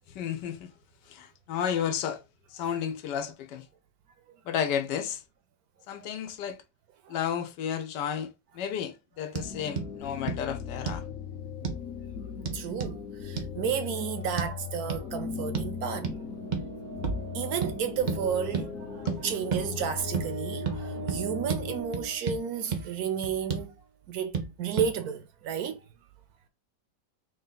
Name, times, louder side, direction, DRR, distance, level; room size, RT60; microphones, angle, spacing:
voice 1, 0.1-0.7 1.1-2.2 2.5-3.6 4.4-5.2 5.9-6.6 7.1-11.0 19.0-19.2, left 8 dB, 85° left, 1.3 m, -32 dB
sound 1, 9.3-9.5 9.8-9.9 10.3-10.4 10.9-11.1 11.6-11.8 12.5-13.0 13.4-13.5 14.4-14.5 14.9-15.0 15.5-15.7 16.0-16.2 16.5-16.7 17.0-17.2 17.6-17.7 18.1-18.2 18.5-18.7 19.1-19.2 19.5-19.7 20.1-20.3 20.7-20.8 21.1-21.2 21.5-21.6 21.9-22.4 22.7-22.8 23.2-23.7 24.3-24.5 24.8-24.9, right 6 dB, 85° right, 0.4 m, -31 dB
sound 2, 9.4-21.8, left 7 dB, 55° left, 1.0 m, -39 dB
voice 2, 12.5-16.1 17.3-23.7 24.1-25.8, right 8 dB, 70° right, 1.0 m, -32 dB
sound 3, 16.1-23.1, right 3 dB, 50° right, 0.6 m, -41 dB
3.4 x 2.7 x 3.8 m
omnidirectional pair, 1.8 m